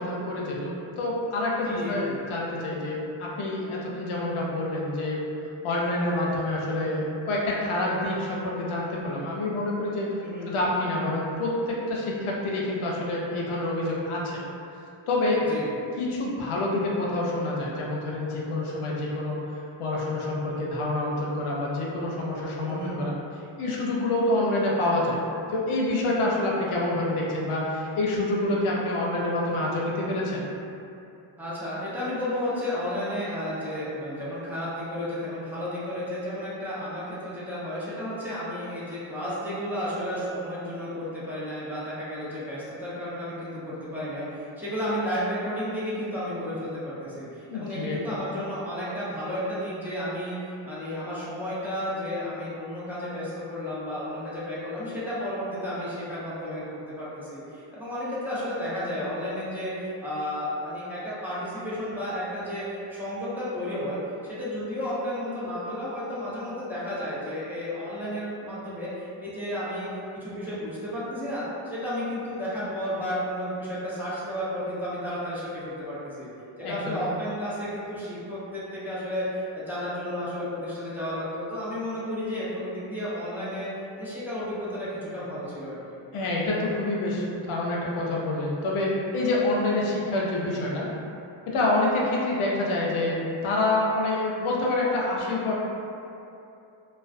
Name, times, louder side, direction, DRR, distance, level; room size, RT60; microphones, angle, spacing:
voice 1, 0.0-5.2 5.6-10.1 10.5-14.4 15.1-15.4 16.0-19.4 19.8-23.1 23.6-25.2 25.5-30.4 47.5-48.2 76.6-77.0 86.1-90.9 91.5-95.6, left 2 dB, 90° left, -4 dB, 0.6 m, -27 dB
voice 2, 1.6-2.3 10.2-10.5 15.5-15.7 22.6-23.0 31.4-76.3 76.6-83.7 84.0-86.0, equal, 5° right, -11 dB, 0.7 m, -32 dB
2.4 x 2.1 x 2.4 m, 2.7 s
cardioid pair, 70°, 48 cm